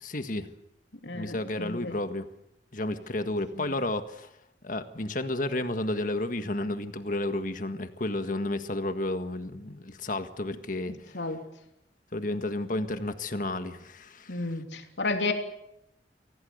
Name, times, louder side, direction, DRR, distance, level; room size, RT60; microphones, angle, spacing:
voice 1, 0.0-0.5 1.1-2.3 2.7-4.3 4.6-11.2 12.1-14.4, left 2 dB, 50° left, 9 dB, 1.7 m, -32 dB
voice 2, 1.0-2.0 3.5-3.8 11.1-11.4 14.3-15.3, left 3 dB, 80° left, 4 dB, 3.2 m, -32 dB
24.5 x 17.5 x 8.0 m, 0.80 s
head